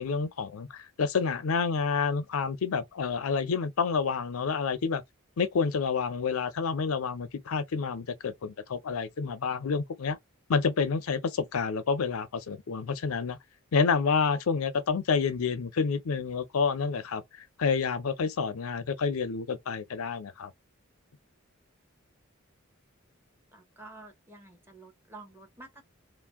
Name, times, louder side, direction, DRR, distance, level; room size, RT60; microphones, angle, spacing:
voice 1, 0.0-5.0 5.4-10.2 10.5-13.4 13.7-17.2 17.6-20.5, left 5 dB, 85° left, 0.5 m, -29 dB
voice 2, 23.5-25.8, right 2 dB, 10° right, 0.8 m, -49 dB
2.5 x 2.0 x 3.4 m
head